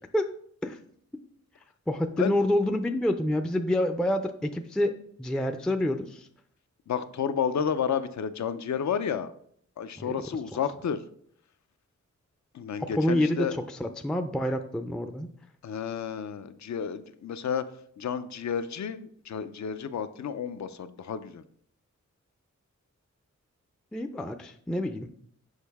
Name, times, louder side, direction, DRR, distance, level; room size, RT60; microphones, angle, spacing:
voice 1, 1.9-6.3 10.0-10.1 12.8-15.3 23.9-25.2, left 1 dB, 5° left, 7 dB, 0.3 m, -28 dB
voice 2, 6.9-9.3 9.8-11.0 12.5-13.5 15.6-17.6 18.0-21.4, left 7 dB, 70° left, 12 dB, 0.5 m, -31 dB
6.5 x 5.2 x 3.5 m, 0.64 s
wide cardioid pair, 105°, 29 cm